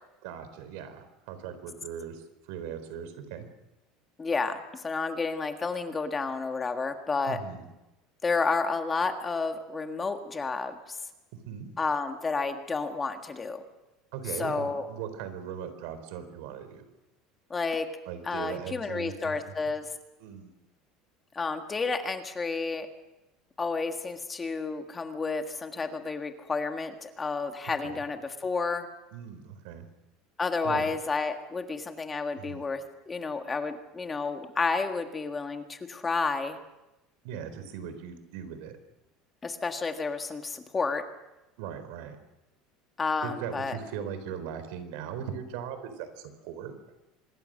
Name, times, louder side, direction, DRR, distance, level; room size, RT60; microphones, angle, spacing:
voice 1, 0.2-3.5 7.3-7.7 11.3-11.7 14.1-16.8 18.1-19.5 20.2-20.5 27.8-28.0 29.1-29.9 30.6-30.9 32.4-32.6 37.2-38.8 41.6-42.2 43.2-46.7, right 8 dB, 75° right, 10 dB, 4.1 m, -39 dB
voice 2, 4.2-7.4 8.2-11.0 11.8-13.6 14.4-14.9 17.5-17.9 18.2-19.9 21.3-22.9 23.6-28.9 30.4-36.6 39.4-41.0 43.0-43.8, left 4 dB, 15° left, 6 dB, 1.7 m, -31 dB
25.5 x 21.5 x 6.5 m, 0.97 s
cardioid pair, 155°, 0 cm